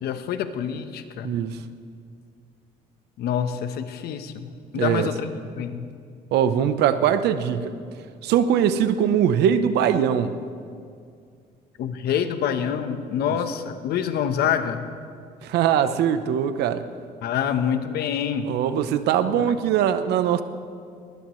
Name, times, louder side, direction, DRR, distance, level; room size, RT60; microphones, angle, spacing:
voice 1, 0.0-1.3 3.2-5.9 11.8-14.9 17.2-18.5 19.3-19.5, left 8 dB, 70° left, 9 dB, 1.1 m, -27 dB
voice 2, 1.2-1.6 4.7-5.1 6.3-7.8 8.2-10.3 15.4-16.8 18.4-20.4, right 9 dB, 80° right, 11 dB, 0.9 m, -21 dB
20.0 x 19.5 x 3.2 m, 2.3 s
cardioid pair, 110°, 17 cm